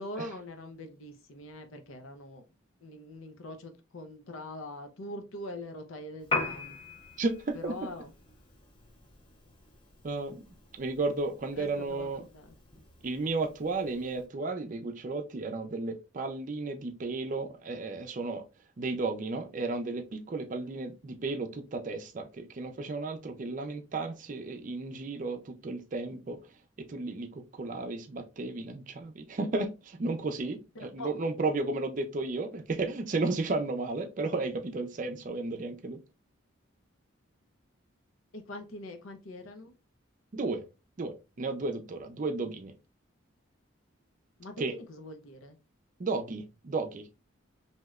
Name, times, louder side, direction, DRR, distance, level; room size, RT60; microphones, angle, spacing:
voice 1, 0.0-2.5 2.8-6.8 7.5-8.1 11.6-12.5 30.7-31.3 38.3-39.7 44.4-45.6, left 1 dB, 80° left, 0.7 m, -43 dB
Piano, 6.2-14.3, left 3 dB, 25° left, 0.6 m, -41 dB
voice 2, 7.2-7.9 10.0-10.4 10.7-12.3 13.0-18.4 18.8-26.4 26.8-36.0 40.3-40.6 41.0-42.7 44.6-44.7 46.0-47.1, right 3 dB, 40° right, 0.4 m, -33 dB
3.1 x 2.8 x 2.3 m
head